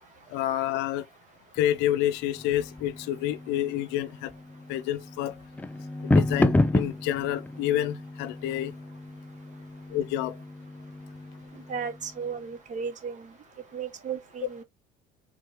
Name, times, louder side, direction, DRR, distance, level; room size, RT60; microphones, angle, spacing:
voice 1, 0.3-1.0 1.6-4.3 4.7-5.3 6.0-8.7 9.9-10.3, left 12 dB, 75° left, 0.6 m, -28 dB
sound 1, 1.6-12.4, left 2 dB, 10° left, 0.5 m, -31 dB
voice 2, 11.7-13.3 13.7-14.6, right 6 dB, 45° right, 1.6 m, -35 dB
4.7 x 3.7 x 2.9 m
supercardioid pair, 95°, 18 cm